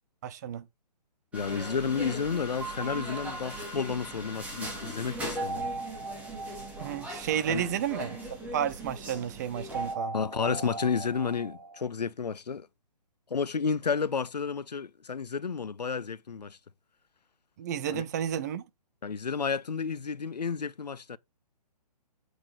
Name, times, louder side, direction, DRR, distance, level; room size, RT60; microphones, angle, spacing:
voice 1, 0.2-0.7 6.5-8.2 8.5-10.1 17.6-18.6, right 9 dB, 25° right, 0.6 m, -32 dB
voice 2, 1.3-5.7 7.5-7.7 10.1-12.7 13.3-16.6 17.9-18.0 19.0-21.2, left 6 dB, 75° left, 0.5 m, -31 dB
sound 1, 1.3-9.9, equal, 5° right, 2.1 m, -40 dB
sound 2, 2.6-4.3 5.4-7.9 9.7-11.9, right 3 dB, 50° right, 1.7 m, -38 dB
7.9 x 4.7 x 4.5 m
figure-of-eight pair, 135°, 21 cm